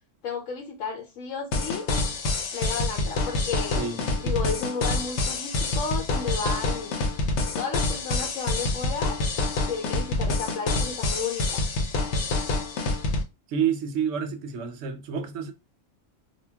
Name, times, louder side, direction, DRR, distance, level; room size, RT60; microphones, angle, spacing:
voice 1, 0.2-1.9 2.5-3.8 4.2-6.9 7.5-9.2 9.7-11.6, left 5 dB, 90° left, 1.0 m, -33 dB
sound 1, 1.5-13.2, left 2 dB, 65° left, 0.8 m, -27 dB
voice 2, 3.8-4.3 13.5-15.5, right 7 dB, 75° right, 0.9 m, -29 dB
2.2 x 2.2 x 3.3 m
omnidirectional pair, 1.3 m